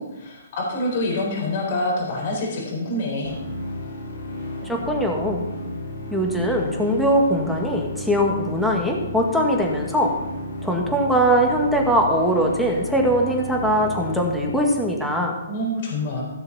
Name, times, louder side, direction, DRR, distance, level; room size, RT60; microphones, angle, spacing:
voice 1, 0.0-3.4 15.5-16.2, left 1 dB, 50° left, -1 dB, 4.7 m, -26 dB
sound 1, 3.2-15.2, left 1 dB, 85° left, 4.2 m, -33 dB
voice 2, 4.6-5.5 6.1-10.1 10.6-15.4, equal, ahead, -1 dB, 1.8 m, -21 dB
16.5 x 7.0 x 4.3 m, 0.97 s
hypercardioid pair, 145°, 0 cm